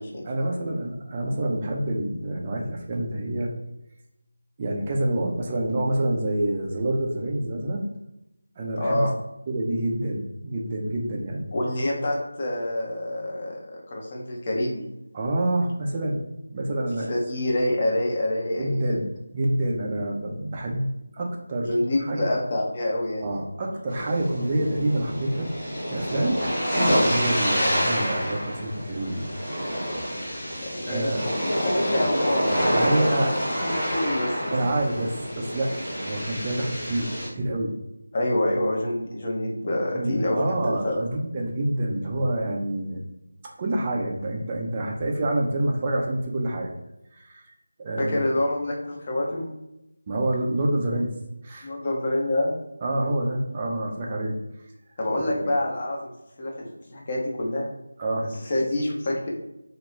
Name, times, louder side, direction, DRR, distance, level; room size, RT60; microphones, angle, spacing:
voice 1, 0.2-3.5 4.6-7.8 8.6-9.1 9.5-11.5 15.1-16.3 16.5-17.1 18.6-19.1 19.3-21.7 22.1-22.3 23.2-25.5 25.9-26.4 27.0-29.3 30.9-31.2 32.7-33.3 34.5-37.7 39.9-43.0 43.6-46.7 47.1-47.4 47.8-48.2 50.1-51.1 51.4-51.7 52.8-54.4 55.1-55.5 58.0-58.3, right 1 dB, 25° right, -1 dB, 0.3 m, -27 dB
voice 2, 8.8-9.1 11.5-14.8 17.1-19.0 21.6-23.3 30.9-33.3 33.6-34.6 38.1-41.0 48.0-49.5 51.6-52.6 55.0-56.1 56.4-57.7 58.4-59.3, left 1 dB, 30° left, -2 dB, 0.5 m, -27 dB
sound 1, 23.9-37.3, equal, 10° left, 1.0 m, -27 dB
2.3 x 2.0 x 3.1 m, 0.87 s
figure-of-eight pair, 165°, 0 cm